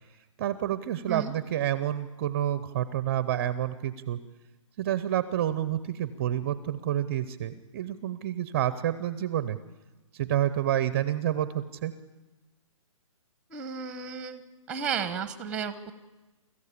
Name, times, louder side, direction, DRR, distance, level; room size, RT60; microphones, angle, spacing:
voice 1, 0.4-4.2 4.8-9.6 10.1-11.9, right 11 dB, 25° right, 14 dB, 0.6 m, -29 dB
voice 2, 13.5-14.4 14.7-15.9, right 7 dB, 5° right, 13 dB, 0.8 m, -33 dB
25.0 x 14.5 x 8.4 m, 1.2 s
hypercardioid pair, 165°, 17 cm